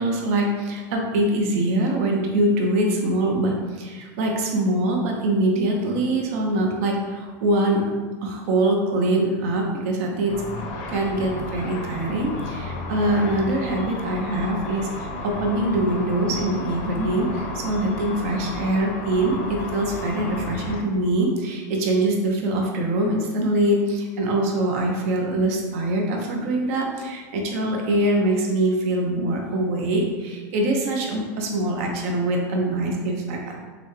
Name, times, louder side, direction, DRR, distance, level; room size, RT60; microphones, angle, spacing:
voice 1, 0.0-7.9 8.2-10.4 10.9-33.5, right 1 dB, 55° right, 1 dB, 0.7 m, -23 dB
Car / Traffic noise roadway noise / Engine, 10.3-20.8, left 2 dB, 45° left, 0.7 m, -33 dB
6.0 x 2.2 x 3.2 m, 1.4 s
supercardioid pair, 175°, 10 cm